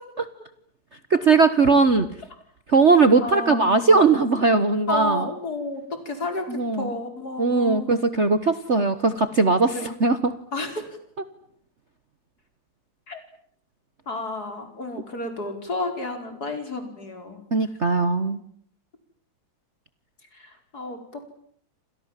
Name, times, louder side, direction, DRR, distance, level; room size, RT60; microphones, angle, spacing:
voice 1, 1.1-2.1 2.7-5.3 6.5-6.9 7.4-9.7 10.0-10.3 17.5-18.4, right 4 dB, 40° right, 11 dB, 1.4 m, -19 dB
voice 2, 3.2-4.3 4.9-7.9 9.7-10.0 10.5-11.0 13.1-13.2 14.1-17.4 20.3-21.4, left 2 dB, 45° left, 6 dB, 5.5 m, -32 dB
29.0 x 26.5 x 7.5 m, 0.64 s
omnidirectional pair, 2.3 m